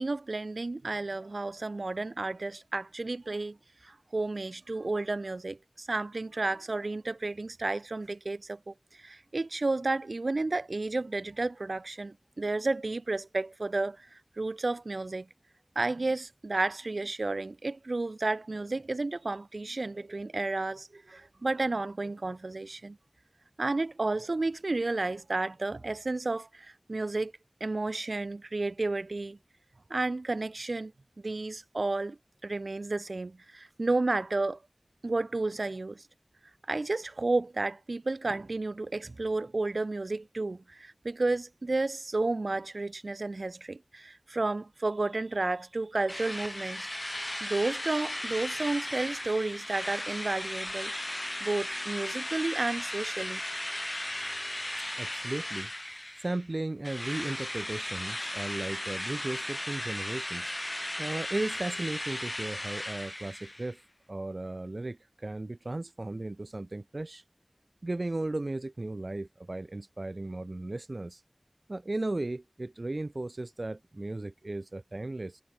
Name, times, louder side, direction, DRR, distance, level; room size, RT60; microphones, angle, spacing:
voice 1, 0.0-3.6 3.8-14.1 14.4-15.3 15.8-23.0 23.6-27.3 27.6-29.4 29.9-30.9 31.2-32.2 32.4-34.6 35.0-36.0 36.7-46.9 47.4-50.9 51.4-53.4, right 2 dB, 85° right, 4.2 m, -32 dB
Drill, 46.1-56.5 56.8-63.7, left 1 dB, 30° left, 5.5 m, -36 dB
voice 2, 55.0-55.7 56.2-60.6 61.0-63.8 64.1-67.2 67.8-71.2 71.7-75.4, right 2 dB, 65° right, 3.9 m, -36 dB
wide cardioid pair, 40°, 0 cm